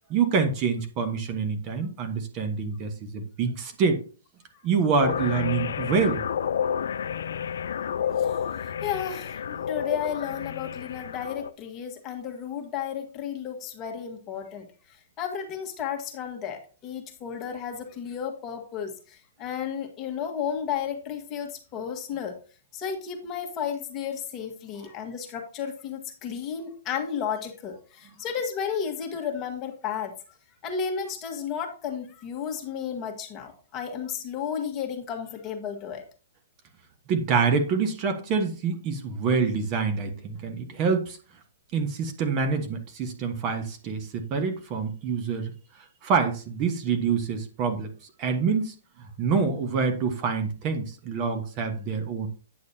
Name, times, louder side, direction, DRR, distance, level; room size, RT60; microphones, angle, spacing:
voice 1, 0.1-4.0 4.6-6.2 37.1-41.2 41.7-45.5 46.0-47.9 48.2-52.3, right 5 dB, 35° right, 6 dB, 1.3 m, -26 dB
sound 1, 5.0-11.5, left 8 dB, 75° left, 0.5 m, -30 dB
voice 2, 8.2-22.4 22.7-30.1 30.6-36.1, left 7 dB, 25° left, 3 dB, 1.5 m, -33 dB
9.3 x 6.6 x 2.8 m, 0.37 s
hypercardioid pair, 145°, 0 cm